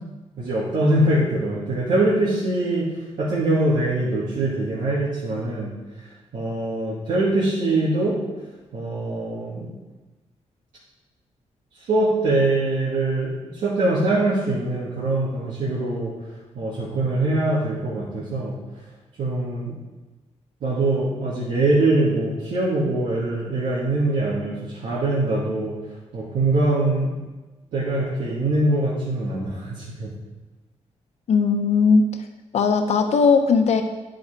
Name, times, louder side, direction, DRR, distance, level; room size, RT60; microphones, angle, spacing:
voice 1, 0.4-2.9 3.2-5.7 6.3-8.2 8.7-9.7 11.8-16.1 16.5-18.5 19.2-19.7 20.6-25.7 26.1-27.1 27.7-30.1, right 2 dB, 80° right, -8 dB, 2.4 m, -23 dB
voice 2, 31.3-32.0 32.5-33.8, left 5 dB, 65° left, 6 dB, 1.0 m, -18 dB
11.0 x 6.4 x 4.6 m, 1.2 s
wide cardioid pair, 150°, 12 cm